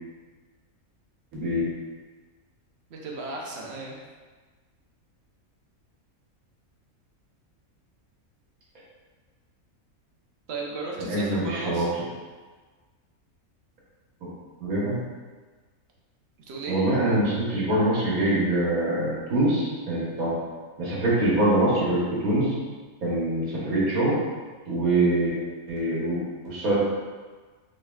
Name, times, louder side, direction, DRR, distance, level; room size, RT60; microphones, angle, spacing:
voice 1, 2.9-4.0 10.5-11.9 16.5-16.8, right 3 dB, 55° right, -2 dB, 0.9 m, -35 dB
voice 2, 11.0-11.9 14.6-15.0 16.7-20.3 20.8-22.6 23.0-24.2 24.7-25.4 25.7-26.8, right 1 dB, 90° right, -7 dB, 1.6 m, -24 dB
4.7 x 3.1 x 2.3 m, 1.4 s
omnidirectional pair, 1.5 m